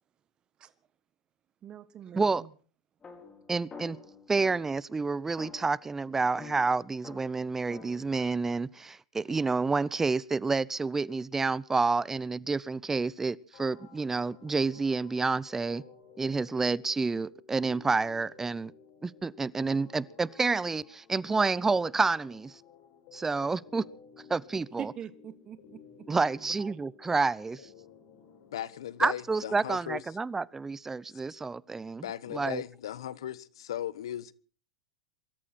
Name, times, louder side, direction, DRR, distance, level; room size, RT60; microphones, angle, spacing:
voice 1, 1.6-2.5 24.8-26.1 26.3-26.8, right 9 dB, 30° right, 1.3 m, -44 dB
sound 1, 3.0-4.8 5.4-8.0, left 5 dB, 20° left, 4.8 m, -48 dB
voice 2, 3.5-4.0 4.3-15.8 16.2-18.7 19.0-22.5 23.1-23.8 24.3-24.8 26.1-27.6 29.0-32.1 32.3-32.6, right 4 dB, 15° right, 0.7 m, -29 dB
sound 2, 13.5-29.5, left 7 dB, 55° left, 6.5 m, -55 dB
voice 3, 28.5-30.0 31.1-31.2 32.0-34.3, left 11 dB, 80° left, 1.0 m, -37 dB
24.0 x 14.0 x 4.3 m
hypercardioid pair, 105°, 3 cm